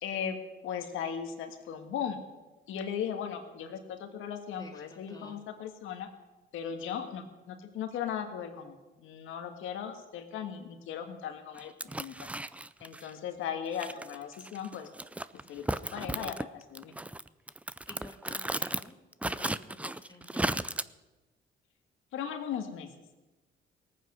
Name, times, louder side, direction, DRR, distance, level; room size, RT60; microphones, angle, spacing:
voice 1, 0.0-2.2 2.7-6.1 6.5-12.3 12.8-14.9 15.5-16.9 22.1-22.9, left 8 dB, 90° left, 6 dB, 1.7 m, -37 dB
voice 2, 4.6-5.4 17.9-20.8, left 2 dB, 20° left, 1 dB, 2.1 m, -51 dB
sound 1, 11.6-13.1 13.7-16.4 16.7-18.9 19.1-20.8, right 1 dB, 5° right, 0.4 m, -35 dB
18.5 x 9.3 x 6.3 m, 1.2 s
cardioid pair, 90°, 20 cm